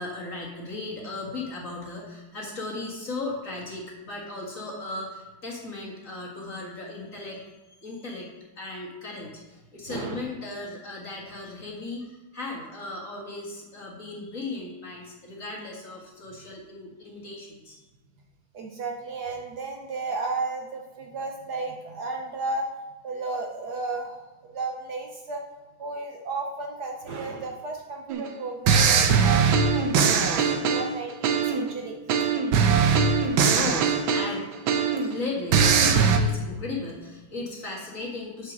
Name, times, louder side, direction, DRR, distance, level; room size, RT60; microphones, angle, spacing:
voice 1, 0.0-17.8 32.1-32.6 33.1-38.5, left 2 dB, 40° left, -2 dB, 2.2 m, -37 dB
voice 2, 9.9-10.2 18.5-22.7 23.0-25.4 25.8-31.9, right 3 dB, 60° right, 1 dB, 1.3 m, -34 dB
sound 1, 28.1-28.3 28.7-31.7 32.1-35.1 35.5-36.2, right 6 dB, 80° right, 1.6 m, -21 dB
6.7 x 6.7 x 6.1 m, 1.2 s
omnidirectional pair, 2.2 m